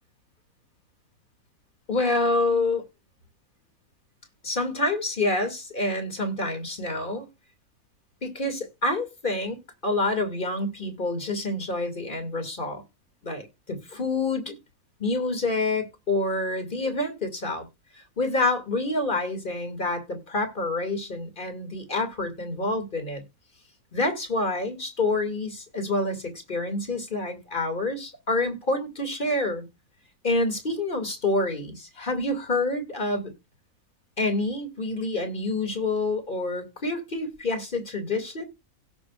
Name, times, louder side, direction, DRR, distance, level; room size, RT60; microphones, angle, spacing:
voice 1, 1.9-2.9 4.4-7.3 8.2-9.6 9.8-12.8 13.2-14.5 15.0-17.6 17.9-23.2 23.9-29.6 30.2-33.3 34.2-38.4, left 2 dB, 35° left, 2.3 m, -27 dB
16.5 x 6.0 x 2.3 m
omnidirectional pair, 1.6 m